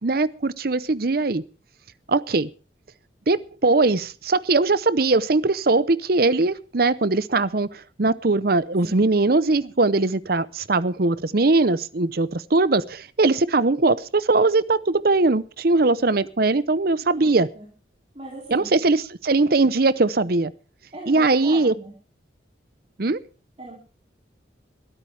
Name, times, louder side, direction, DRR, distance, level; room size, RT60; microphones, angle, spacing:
voice 1, 0.0-1.4 2.1-2.5 3.3-17.5 18.5-20.5 21.1-21.7 23.0-23.2, right 3 dB, 50° right, 0.7 m, -20 dB
voice 2, 17.0-17.7 18.1-18.8 20.9-21.9 23.6-23.8, right 1 dB, 35° right, 4.0 m, -39 dB
22.0 x 13.0 x 3.4 m
head